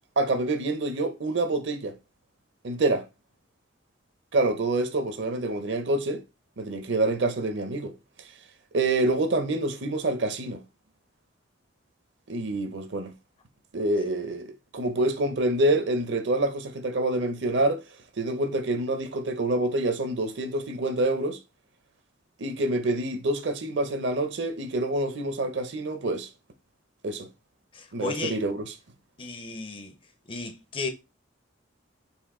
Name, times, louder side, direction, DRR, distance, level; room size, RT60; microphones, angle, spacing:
voice 1, 0.2-1.9 2.6-3.0 4.3-6.2 6.6-7.9 8.7-10.6 12.3-13.1 13.7-17.8 18.2-21.4 22.4-26.3 27.0-27.3 27.9-28.7, right 2 dB, 65° right, 0.7 m, -27 dB
voice 2, 27.7-28.4 29.2-30.0 30.3-30.9, left 4 dB, 25° left, 0.5 m, -34 dB
4.4 x 2.6 x 3.7 m
head